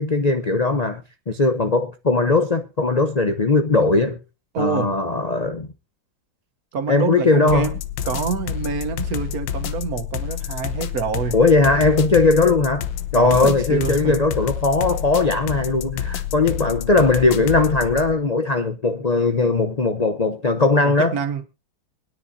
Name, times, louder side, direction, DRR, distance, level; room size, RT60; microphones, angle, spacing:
voice 1, 0.0-4.2 4.6-5.7 6.9-7.7 11.3-12.8 13.1-21.1, left 3 dB, 45° left, 0.5 m, -19 dB
voice 2, 4.5-5.0 6.7-7.8 8.0-11.4 13.1-14.2 20.8-21.4, right 6 dB, 55° right, 1.4 m, -26 dB
sound 1, 7.5-18.1, left 10 dB, 75° left, 1.6 m, -28 dB
23.0 x 9.9 x 2.6 m
omnidirectional pair, 2.0 m